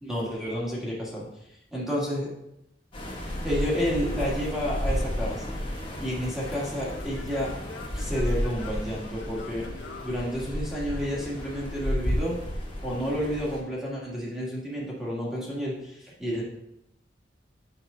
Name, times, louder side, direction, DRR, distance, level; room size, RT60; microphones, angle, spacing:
voice 1, 0.0-1.2 1.7-2.3 3.4-5.4 6.0-7.5 7.9-9.7 10.0-12.4 12.8-16.4, equal, ahead, -6 dB, 1.8 m, -30 dB
sound 1, 2.9-13.6, equal, 30° left, 1.3 m, -32 dB
Singing / Plucked string instrument, 5.4-11.0, left 3 dB, 80° left, 0.7 m, -46 dB
6.1 x 5.5 x 3.8 m, 0.83 s
head